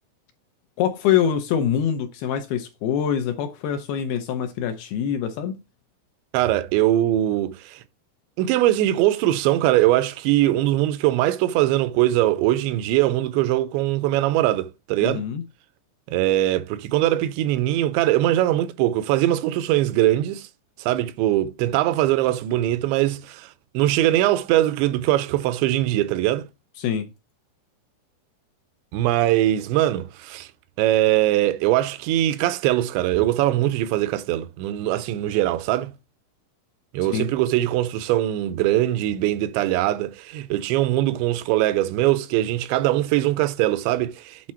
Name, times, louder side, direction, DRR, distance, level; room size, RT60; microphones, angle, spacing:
voice 1, 0.8-5.6 15.0-15.4 26.8-27.1 37.1-37.3, left 9 dB, 80° left, 2.3 m, -24 dB
voice 2, 6.3-7.8 8.4-15.2 16.1-20.5 20.8-26.5 28.9-30.5 30.8-35.9 36.9-44.5, right 14 dB, 80° right, 2.9 m, -21 dB
8.6 x 4.1 x 4.4 m
omnidirectional pair, 5.2 m